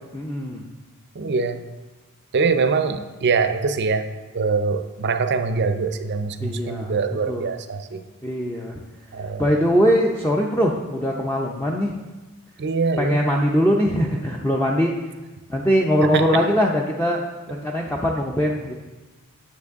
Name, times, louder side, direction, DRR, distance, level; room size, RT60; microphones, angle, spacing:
voice 1, 0.1-0.6 6.4-7.0 7.3-7.5 8.2-8.8 9.4-11.9 13.0-15.0 15.5-18.7, equal, 10° left, -1 dB, 0.5 m, -21 dB
voice 2, 1.2-1.6 2.3-4.1 4.3-8.0 9.1-9.4 12.6-13.2 16.1-16.4, right 4 dB, 50° right, 9 dB, 0.5 m, -23 dB
9.4 x 7.2 x 3.6 m, 1.2 s
head